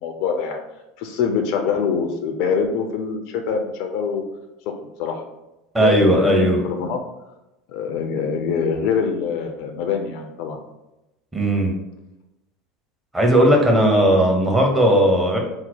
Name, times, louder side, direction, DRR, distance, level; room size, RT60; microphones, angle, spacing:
voice 1, 0.0-0.6 1.0-4.2 4.7-5.2 5.8-7.0 7.7-10.6, left 6 dB, 55° left, 4 dB, 0.4 m, -24 dB
voice 2, 5.7-6.6 11.3-11.7 13.1-15.4, right 1 dB, 15° right, 1 dB, 1.0 m, -16 dB
4.0 x 2.0 x 4.4 m, 0.96 s
figure-of-eight pair, 75°, 0 cm